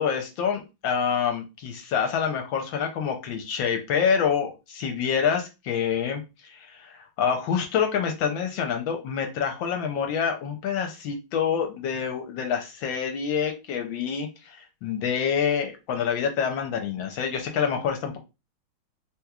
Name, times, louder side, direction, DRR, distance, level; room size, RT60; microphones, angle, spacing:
voice 1, 0.0-18.2, left 7 dB, 75° left, 4 dB, 1.3 m, -27 dB
3.5 x 2.9 x 2.3 m, 0.26 s
omnidirectional pair, 2.3 m